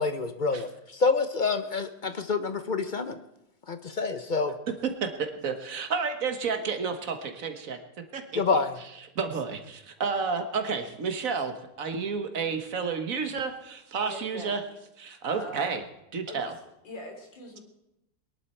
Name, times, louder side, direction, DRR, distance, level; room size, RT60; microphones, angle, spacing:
voice 1, 0.0-3.2 3.7-4.5 8.3-8.8, left 4 dB, 50° left, 9 dB, 0.5 m, -27 dB
voice 2, 5.0-7.8 8.1-8.4 9.2-14.6 15.0-15.8 16.1-16.5, right 5 dB, 50° right, 6 dB, 1.7 m, -31 dB
voice 3, 14.0-14.6 15.3-15.8 16.3-16.4 16.8-17.6, left 1 dB, 90° left, 2 dB, 3.8 m, -41 dB
22.0 x 11.5 x 4.5 m, 0.87 s
omnidirectional pair, 2.0 m